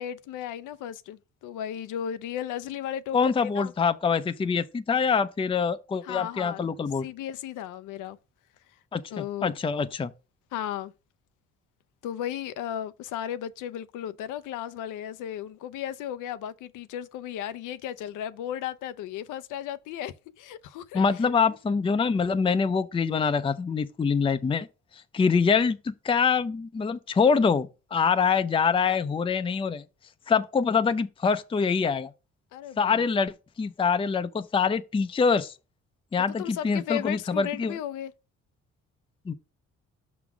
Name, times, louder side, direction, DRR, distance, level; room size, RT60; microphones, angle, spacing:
voice 1, 0.0-3.7 6.0-6.7 7.0-8.2 9.1-9.5 10.5-10.9 12.0-21.6 32.5-33.1 36.4-38.1, left 10 dB, 85° left, 0.6 m, -35 dB
voice 2, 3.1-7.0 8.9-10.1 20.9-24.7 25.1-29.8 30.3-32.1 32.8-35.5 36.1-37.8 39.3-39.4, left 5 dB, 20° left, 0.5 m, -25 dB
5.9 x 3.8 x 6.0 m
cardioid pair, 90°, 30 cm